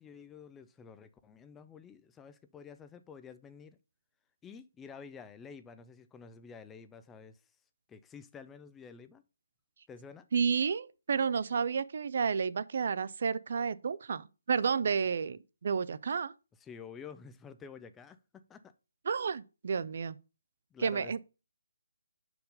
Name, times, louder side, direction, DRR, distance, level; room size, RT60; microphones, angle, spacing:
voice 1, 0.0-3.8 4.4-7.4 7.9-9.2 9.9-10.2 16.6-18.7 20.7-21.2, left 6 dB, 10° left, 0.4 m, -50 dB
voice 2, 10.3-16.3 19.1-20.2 20.8-21.2, right 6 dB, 55° right, 0.4 m, -31 dB
5.2 x 4.7 x 5.3 m
figure-of-eight pair, 155°, 0 cm